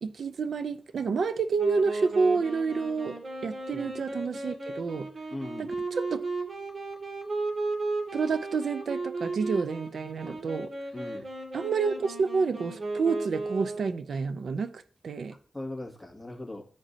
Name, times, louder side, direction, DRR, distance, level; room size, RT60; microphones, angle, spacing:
voice 1, 0.0-5.1 5.6-6.2 8.1-10.7 11.5-15.4, right 4 dB, 90° right, 0.6 m, -29 dB
Wind instrument woodwind instrument, 1.5-14.0, right 3 dB, 55° right, 2.3 m, -35 dB
voice 2, 5.3-5.7 10.3-10.4 10.9-11.2 15.5-16.6, left 1 dB, 5° left, 2.2 m, -39 dB
14.0 x 5.2 x 2.7 m
wide cardioid pair, 75°, 0 cm